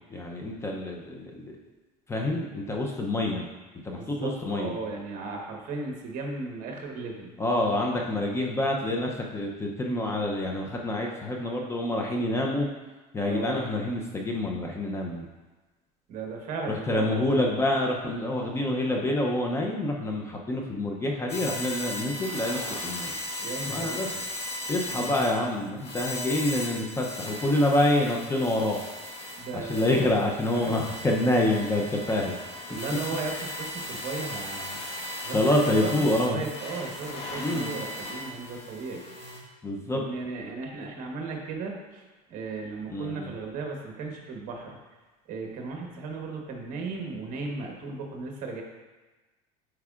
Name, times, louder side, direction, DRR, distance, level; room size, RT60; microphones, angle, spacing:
voice 1, 0.1-1.6 2.1-3.5 3.8-4.8 7.4-12.7 13.1-15.3 16.7-23.1 23.7-24.1 24.7-28.8 29.5-32.3 35.3-36.4 37.4-37.7 39.6-40.1 42.9-43.3, left 1 dB, 15° left, 0 dB, 0.6 m, -27 dB
voice 2, 3.9-7.3 13.2-13.6 16.1-17.5 23.4-24.3 24.9-25.1 26.4-26.5 29.4-30.1 30.5-30.8 32.7-34.8 35.2-39.0 39.9-42.0 42.3-44.8 45.3-48.6, right 3 dB, 50° right, 1 dB, 1.2 m, -36 dB
sound 1, 21.3-39.4, left 1 dB, 35° left, 1.3 m, -37 dB
9.4 x 4.7 x 2.4 m, 1.2 s
supercardioid pair, 130°, 18 cm